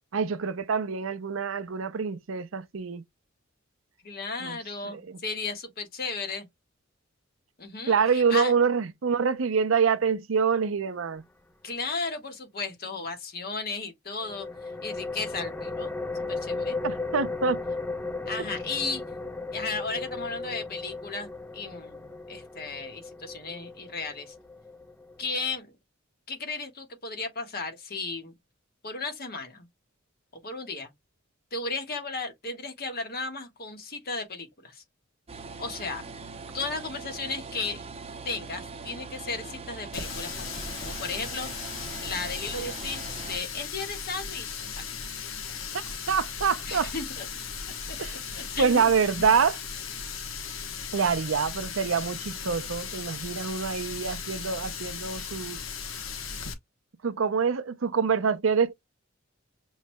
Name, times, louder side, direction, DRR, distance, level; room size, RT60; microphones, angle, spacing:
voice 1, 0.1-3.0 4.4-4.6 4.8-5.2 7.9-11.2 16.8-17.6 46.1-46.9 48.0-48.2 48.6-49.6 50.9-55.6 57.0-58.7, right 6 dB, 85° right, 0.6 m, -26 dB
voice 2, 4.0-6.5 7.6-8.5 11.6-14.5 14.8-15.9 16.3-16.8 18.3-19.0 19.5-24.3 25.2-25.7 26.3-28.3 28.8-29.7 30.4-30.9 31.5-34.8 35.6-36.0 36.5-37.8 38.2-41.5 42.0-45.0 46.6-47.3 47.9-48.0 48.4-49.3, left 3 dB, 50° left, 1.4 m, -35 dB
sound 1, 14.2-25.6, left 3 dB, 10° left, 0.5 m, -36 dB
sound 2, 35.3-43.4, right 4 dB, 30° right, 0.7 m, -41 dB
Water tap faucet, 39.9-56.5, left 6 dB, 90° left, 1.0 m, -37 dB
6.3 x 3.1 x 2.2 m
head